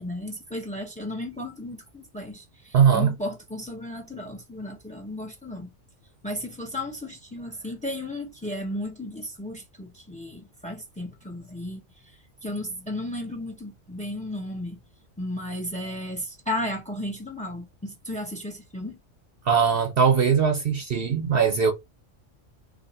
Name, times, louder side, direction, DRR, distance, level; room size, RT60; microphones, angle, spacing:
voice 1, 0.0-5.7 6.2-11.8 12.4-14.8 15.2-19.0, left 1 dB, 5° left, 0.9 m, -34 dB
voice 2, 2.7-3.1 19.4-21.7, right 7 dB, 55° right, 0.8 m, -20 dB
2.8 x 2.8 x 4.0 m
omnidirectional pair, 1.3 m